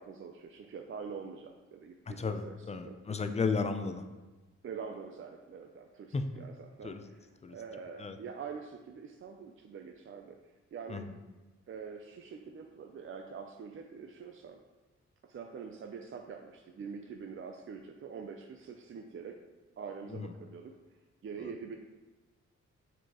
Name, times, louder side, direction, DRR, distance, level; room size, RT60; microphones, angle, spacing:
voice 1, 0.0-3.0 4.6-10.4 10.7-11.1 11.7-14.6 15.2-19.4 19.8-20.8 21.2-21.8, right 6 dB, 45° right, 4 dB, 0.5 m, -45 dB
voice 2, 2.2-4.0 6.1-6.5 6.8-7.0 7.4-7.6 8.0-8.2 10.9-11.0 20.1-20.3, left 4 dB, 20° left, 8 dB, 0.5 m, -34 dB
6.8 x 4.7 x 3.0 m, 1.2 s
cardioid pair, 95°, 30 cm